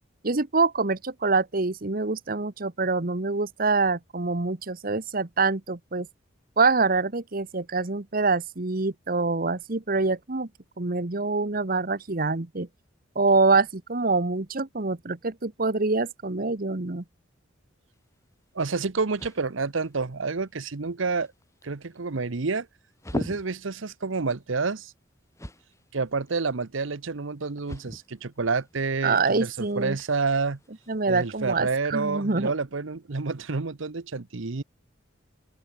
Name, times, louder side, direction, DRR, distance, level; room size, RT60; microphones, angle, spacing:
voice 1, 0.2-6.1 6.6-10.5 10.8-12.7 13.1-17.0 29.0-30.0 30.9-32.5, right 3 dB, 45° right, 1.1 m, -25 dB
sound 1, 17.9-31.3, equal, 15° left, 5.8 m, -44 dB
voice 2, 18.5-21.3 21.6-22.7 23.1-24.9 25.9-30.6 31.1-34.6, right 4 dB, 75° right, 0.9 m, -29 dB
open air
head